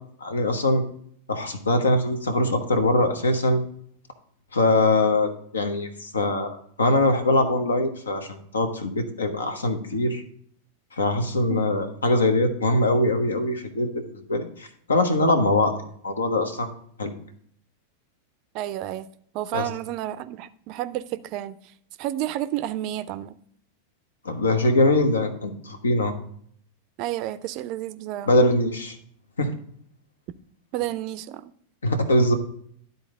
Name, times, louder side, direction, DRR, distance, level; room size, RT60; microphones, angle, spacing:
voice 1, 0.2-0.8 1.3-3.6 4.5-10.2 11.0-15.7 16.0-16.7 17.0-17.1 19.5-19.6 24.2-26.1 28.3-29.0 29.4-29.5 31.8-32.3, left 2 dB, 70° left, 0.9 m, -22 dB
voice 2, 18.5-19.1 19.3-21.6 22.0-23.4 27.0-28.3 30.7-31.5, right 13 dB, 40° right, 0.4 m, -31 dB
12.0 x 4.1 x 3.7 m
figure-of-eight pair, 90°, 0 cm